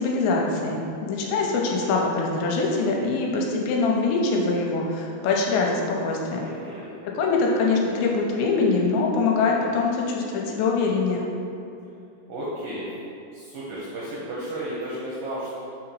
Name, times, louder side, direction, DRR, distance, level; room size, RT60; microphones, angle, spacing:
voice 1, 0.0-6.5 7.0-11.2, left 3 dB, 90° left, -1 dB, 2.9 m, -23 dB
voice 2, 6.4-6.9 12.3-12.9 13.3-15.6, right 1 dB, 85° right, -7 dB, 2.0 m, -33 dB
7.0 x 2.9 x 5.4 m, 2.6 s
omnidirectional pair, 5.0 m